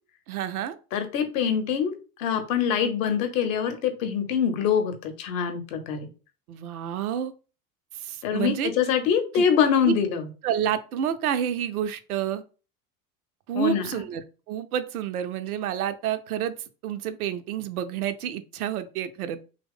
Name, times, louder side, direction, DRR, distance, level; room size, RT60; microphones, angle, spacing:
voice 1, 0.3-0.8 6.5-7.3 7.9-8.7 9.3-9.5 9.8-9.9 10.4-12.4 13.5-16.5 16.8-19.4, right 9 dB, 65° right, 0.5 m, -29 dB
voice 2, 0.9-1.9 2.2-6.1 8.2-10.2 13.5-13.8, left 7 dB, 55° left, 0.8 m, -24 dB
2.9 x 2.1 x 3.4 m
figure-of-eight pair, 70°, 47 cm